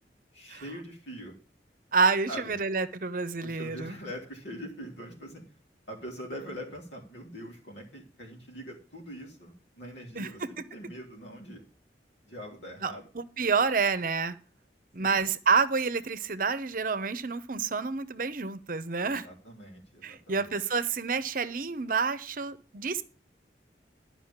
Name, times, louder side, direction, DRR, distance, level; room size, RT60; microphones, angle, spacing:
voice 1, 0.3-1.3 2.3-2.5 3.4-5.4 5.9-11.6 12.2-13.0 15.0-15.2 19.0-20.5, equal, 85° left, 3.9 m, -43 dB
voice 2, 1.9-4.0 10.2-10.5 12.8-14.3 14.9-19.3 20.0-23.0, right 5 dB, 50° right, 0.8 m, -28 dB
11.5 x 5.5 x 7.3 m
head